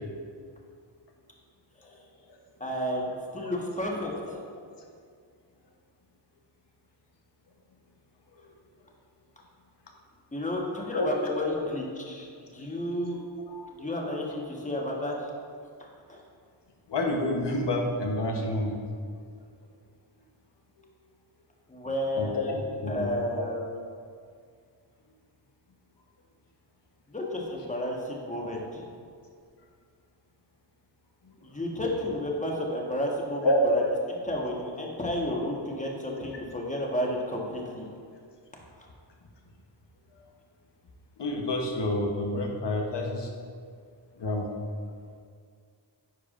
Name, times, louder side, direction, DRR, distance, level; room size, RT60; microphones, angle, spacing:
voice 1, 2.6-3.1 3.3-4.4 10.3-13.2 13.7-15.3 16.1-16.2 21.7-22.6 22.9-23.7 27.1-28.9 31.4-33.8 34.1-37.9 38.8-38.9, left 1 dB, 15° left, -2 dB, 1.3 m, -32 dB
voice 2, 10.9-11.7 12.6-12.8 13.5-13.9 16.9-18.8 22.2-23.1 23.4-23.5 33.4-33.6 40.1-40.2 41.2-43.3 44.2-44.5, left 1 dB, 60° left, 1 dB, 1.0 m, -29 dB
10.0 x 4.7 x 2.5 m, 2.2 s
cardioid pair, 50°, 47 cm